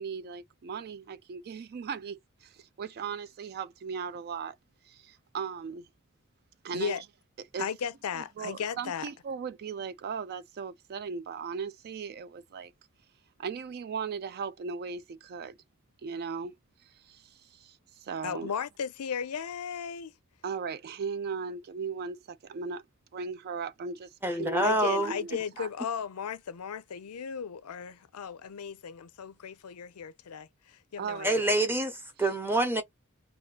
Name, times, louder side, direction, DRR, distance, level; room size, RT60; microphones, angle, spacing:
voice 1, 0.0-4.6 4.8-5.9 6.6-7.0 7.5-7.7 8.1-12.7 13.4-15.6 16.0-16.6 16.8-18.5 20.4-22.8 23.1-25.7 31.0-31.3, right 5 dB, 45° right, 0.3 m, -37 dB
voice 2, 7.6-9.1 18.2-20.1 24.6-31.5, left 7 dB, 85° left, 0.5 m, -36 dB
voice 3, 24.2-25.1 31.2-32.8, right 1 dB, 10° right, 0.7 m, -26 dB
2.6 x 2.3 x 3.3 m
head